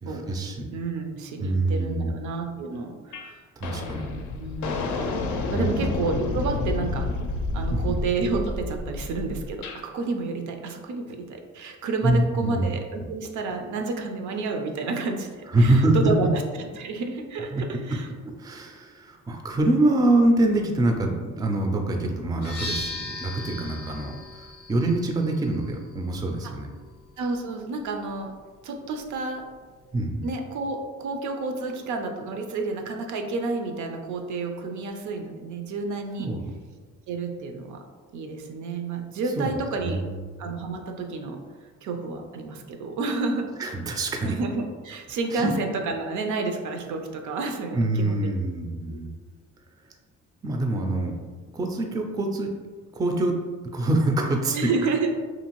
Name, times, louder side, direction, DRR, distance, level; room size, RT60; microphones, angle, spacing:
voice 1, 0.0-0.7 1.4-2.1 3.6-4.1 5.5-5.9 7.7-8.0 12.0-12.7 15.5-16.0 17.5-17.6 18.4-26.7 29.9-30.2 36.2-36.5 39.4-40.2 43.6-44.4 45.3-45.5 47.7-49.1 50.4-51.1 51.5-52.5 52.9-53.4 53.7-54.6, right 2 dB, 15° right, 3 dB, 0.3 m, -25 dB
voice 2, 0.7-3.4 3.8-4.9 5.5-7.1 7.5-18.1 26.4-26.6 27.2-28.3 28.6-29.5 30.2-36.3 37.1-37.8 38.1-40.0 40.4-41.4 41.8-43.5 44.2-48.5 48.8-49.0 54.5-55.1, right 3 dB, 75° right, 4 dB, 0.4 m, -30 dB
sound 1, 3.1-3.3 3.6-9.8, left 3 dB, 80° left, 0.5 m, -30 dB
sound 2, 22.4-30.1, left 2 dB, 35° left, 0.6 m, -40 dB
2.6 x 2.4 x 2.9 m, 1.5 s
cardioid pair, 90°, 30 cm